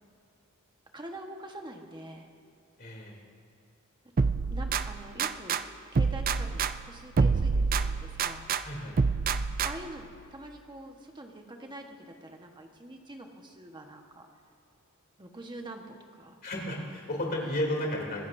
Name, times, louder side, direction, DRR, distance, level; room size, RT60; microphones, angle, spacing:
voice 1, 0.9-2.3 4.0-5.6 5.9-8.4 9.6-14.3 15.2-16.4, right 1 dB, 20° right, 3 dB, 1.3 m, -45 dB
voice 2, 2.8-3.2 8.6-9.0 16.4-18.3, left 1 dB, 45° left, -1 dB, 3.2 m, -33 dB
sound 1, 4.2-5.6 5.9-8.6 9.0-10.0, right 4 dB, 40° right, 0.4 m, -27 dB
25.0 x 15.0 x 2.7 m, 2.5 s
head